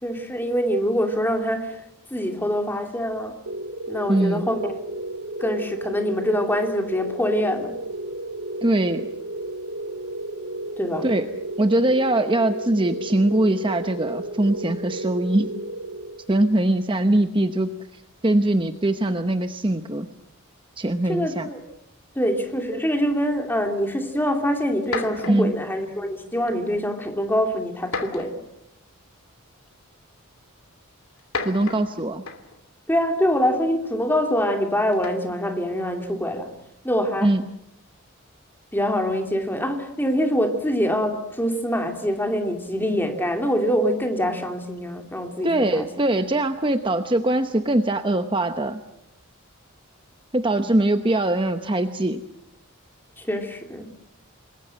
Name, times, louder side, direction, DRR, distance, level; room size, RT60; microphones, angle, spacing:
voice 1, 0.0-1.8 2.1-3.4 3.9-4.8 5.4-7.8 10.8-11.1 21.1-21.6 22.1-28.4 32.9-36.5 36.8-37.3 38.7-45.9 53.2-53.9, equal, 10° left, 2.7 m, -24 dB
sound 1, 3.5-16.6, right 1 dB, 85° right, 2.5 m, -33 dB
voice 2, 4.1-4.5 8.6-9.1 11.0-11.3 11.6-15.5 16.3-20.1 20.8-21.5 25.3-25.5 31.4-32.2 37.2-37.4 45.4-48.8 50.3-52.2, right 1 dB, 25° right, 0.9 m, -22 dB
sound 2, 24.2-24.3 24.8-25.6 26.5-26.8 27.9-28.6 29.7-29.8 31.1-32.6 34.9-35.4, left 4 dB, 80° left, 2.8 m, -33 dB
27.5 x 21.5 x 7.6 m
head